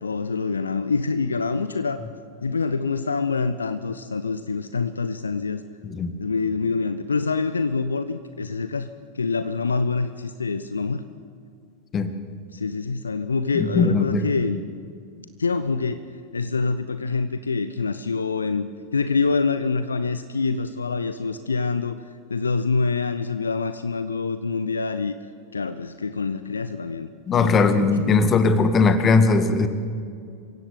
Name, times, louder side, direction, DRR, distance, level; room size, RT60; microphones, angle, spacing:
voice 1, 0.0-2.0 2.4-5.6 6.2-8.9 9.1-11.0 12.5-14.6 15.4-16.1 16.3-22.0 22.3-25.2 25.5-28.2, left 4 dB, 75° left, 12 dB, 0.8 m, -26 dB
voice 2, 13.5-14.2 27.3-29.7, left 4 dB, 25° left, 10 dB, 2.1 m, -19 dB
27.5 x 16.0 x 9.6 m, 2.3 s
figure-of-eight pair, 90°, 0 cm